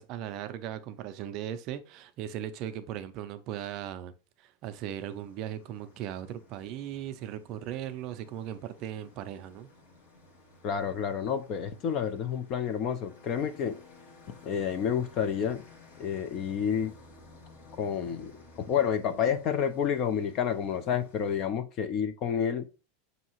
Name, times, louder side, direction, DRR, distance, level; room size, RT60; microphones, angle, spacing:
voice 1, 0.0-4.1 4.4-9.7, right 10 dB, 40° right, 0.4 m, -38 dB
sound 1, 4.6-21.4, left 3 dB, 65° left, 1.2 m, -56 dB
voice 2, 10.6-13.8 14.4-15.6 16.0-16.9 17.8-18.3 18.6-22.7, left 8 dB, 35° left, 0.4 m, -29 dB
5.6 x 2.7 x 2.9 m
supercardioid pair, 160°, 0 cm